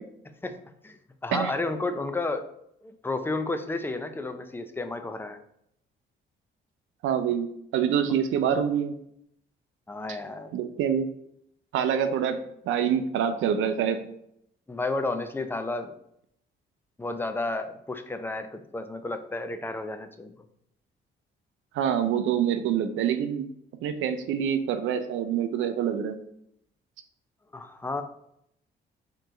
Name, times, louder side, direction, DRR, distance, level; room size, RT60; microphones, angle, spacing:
voice 1, 0.8-2.5 2.8-5.4 9.9-10.5 14.7-15.9 17.0-20.3 27.5-28.0, left 2 dB, 10° left, 8 dB, 0.5 m, -32 dB
voice 2, 7.0-7.5 7.7-9.0 10.5-11.1 11.7-12.4 12.7-14.0 21.7-23.4 23.8-26.2, right 8 dB, 80° right, 9 dB, 0.5 m, -26 dB
4.5 x 3.0 x 3.8 m, 0.73 s
cardioid pair, 90°, 20 cm